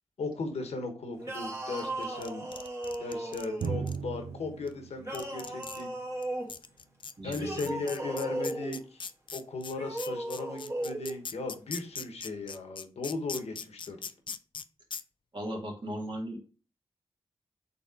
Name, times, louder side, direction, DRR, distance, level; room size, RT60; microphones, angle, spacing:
voice 1, 0.2-2.5 3.0-5.9 7.2-9.0 9.3-14.0, left 3 dB, 80° left, 5 dB, 1.0 m, -37 dB
sound 1, 1.2-3.9 5.0-6.5 7.3-8.8 9.7-11.2, right 1 dB, 25° right, 1.4 m, -36 dB
sound 2, 1.8-4.0 4.7-4.8 5.1-5.8 6.2-6.3 6.5-14.6 14.9-15.0, left 5 dB, 50° left, 0.4 m, -40 dB
Drum, 3.6-7.1, right 6 dB, 70° right, 0.4 m, -38 dB
voice 2, 7.2-7.7 15.3-16.4, right 1 dB, 50° right, 0 dB, 1.6 m, -37 dB
4.1 x 3.4 x 3.6 m, 0.38 s
cardioid pair, 50°, 11 cm